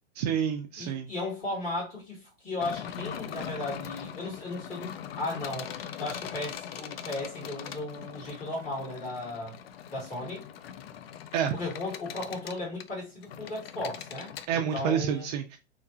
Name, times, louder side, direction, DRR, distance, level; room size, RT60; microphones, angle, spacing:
voice 1, 0.2-1.1 11.3-11.5 14.5-15.6, right 8 dB, 35° right, 0.5 m, -28 dB
voice 2, 0.8-5.7 6.0-9.6 9.9-10.5 11.5-15.3, left 2 dB, 25° left, 2.1 m, -36 dB
sound 1, 2.6-14.5, left 9 dB, 60° left, 0.5 m, -41 dB
3.5 x 2.9 x 2.7 m
hypercardioid pair, 115°, 35 cm